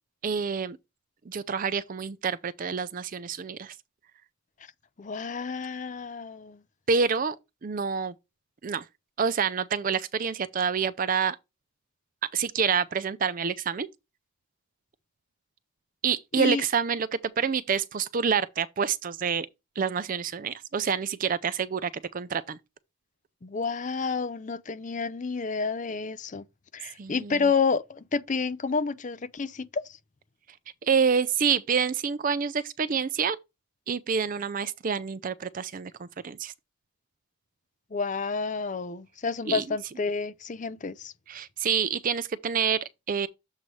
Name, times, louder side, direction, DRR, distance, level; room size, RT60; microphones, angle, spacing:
voice 1, 0.2-0.8 1.3-3.7 6.9-7.4 7.6-8.1 8.6-8.8 9.2-11.4 12.3-13.9 16.0-17.1 17.4-19.5 19.8-22.6 27.0-27.5 30.8-33.4 33.9-36.5 39.5-39.8 41.3-43.3, right 6 dB, 40° right, 0.4 m, -27 dB
voice 2, 5.0-6.6 16.3-16.6 23.4-26.4 26.7-29.8 37.9-41.1, left 4 dB, 35° left, 0.5 m, -29 dB
7.4 x 3.1 x 5.3 m
head